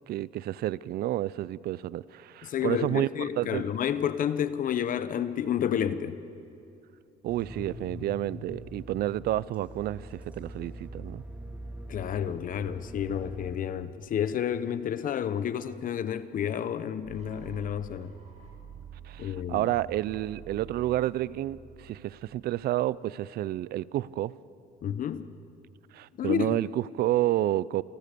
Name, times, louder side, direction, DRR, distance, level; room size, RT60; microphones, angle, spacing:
voice 1, 0.1-3.1 3.4-3.7 7.2-11.2 19.1-24.3 25.9-27.8, right 14 dB, 65° right, 0.6 m, -30 dB
voice 2, 2.4-6.2 11.9-18.1 19.2-19.7 24.8-25.3 26.2-26.6, left 9 dB, 55° left, 1.0 m, -30 dB
sound 1, 7.3-13.6, equal, 10° right, 3.6 m, -43 dB
sound 2, 17.0-23.0, right 7 dB, 45° right, 7.4 m, -48 dB
28.5 x 19.0 x 6.9 m
cardioid pair, 110°, 17 cm